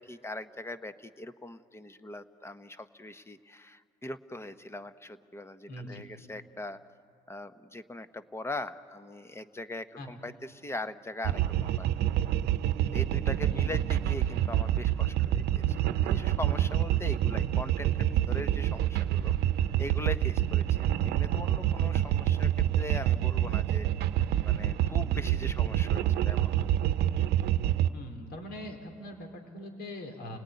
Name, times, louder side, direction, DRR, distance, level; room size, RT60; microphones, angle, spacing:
voice 1, 0.0-6.8 7.3-11.9 12.9-19.3 19.8-22.5 22.8-23.9 24.4-26.8, left 1 dB, 15° left, 11 dB, 1.1 m, -41 dB
voice 2, 5.7-6.0 10.0-10.1 13.5-13.9 24.9-25.3 27.9-30.4, left 1 dB, 65° left, 4 dB, 4.1 m, -42 dB
sound 1, 11.2-27.9, right 12 dB, 70° right, 0.8 m, -27 dB
30.0 x 18.5 x 9.7 m, 2.3 s
supercardioid pair, 90°, 18 cm